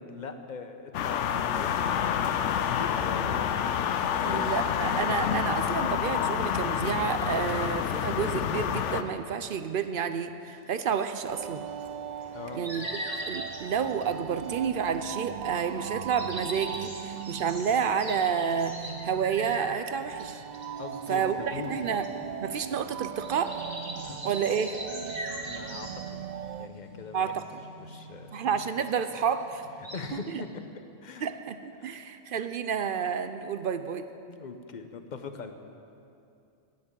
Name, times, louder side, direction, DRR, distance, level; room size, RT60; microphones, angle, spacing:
voice 1, 0.0-3.5 3.8-4.7 5.0-5.6 12.3-12.6 20.8-21.8 24.0-24.2 25.5-26.0 26.6-27.3 27.7-28.9 29.8-31.3 31.8-32.0 34.3-35.5, left 5 dB, 40° left, 7 dB, 0.9 m, -41 dB
sound 1, 0.9-9.0, left 8 dB, 70° left, 0.9 m, -28 dB
voice 2, 4.2-11.7 12.5-20.4 21.1-22.0 22.4-23.6 24.2-24.8 27.1-27.6 28.3-29.6 30.1-30.4 31.2-34.1, right 7 dB, 55° right, 10 dB, 0.6 m, -30 dB
sound 2, 10.5-30.1, equal, 30° right, 1.8 m, -42 dB
sound 3, 11.3-26.7, right 9 dB, 90° right, 0.3 m, -39 dB
10.0 x 9.7 x 9.0 m, 2.6 s
omnidirectional pair, 1.3 m